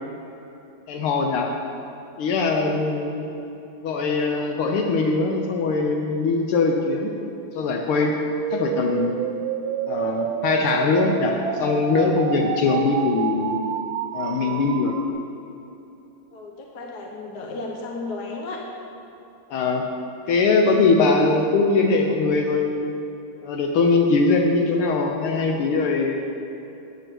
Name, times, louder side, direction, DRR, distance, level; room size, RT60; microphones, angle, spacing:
voice 1, 0.9-1.5 2.2-3.3 3.8-7.1 7.6-8.1 8.5-9.1 9.9-13.6 14.1-15.0 19.5-19.9 20.3-22.9 23.4-26.2, left 3 dB, 80° left, 2 dB, 1.7 m, -21 dB
sound 1, 8.1-15.1, right 8 dB, 75° right, 1.2 m, -28 dB
voice 2, 14.3-14.7 16.3-18.6, left 3 dB, 55° left, 0 dB, 1.3 m, -35 dB
9.7 x 8.3 x 6.1 m, 2.9 s
omnidirectional pair, 2.4 m